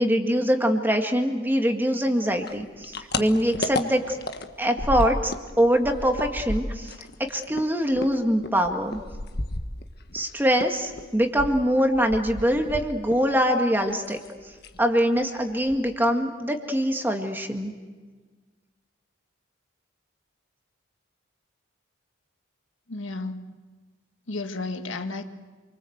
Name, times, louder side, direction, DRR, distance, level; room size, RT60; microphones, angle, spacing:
voice 1, 0.0-4.2 4.6-6.9 7.2-9.0 10.1-14.2 14.8-17.7, equal, 10° right, 4 dB, 2.0 m, -23 dB
sound 1, 2.4-5.5 5.7-10.2 10.6-13.3 13.6-14.3 14.6-14.8 15.2-15.3 15.5-16.1, left 2 dB, 55° left, 1.5 m, -33 dB
voice 2, 22.9-23.5 24.3-25.2, left 3 dB, 75° left, 6 dB, 1.8 m, -32 dB
29.0 x 23.5 x 8.1 m, 1.4 s
head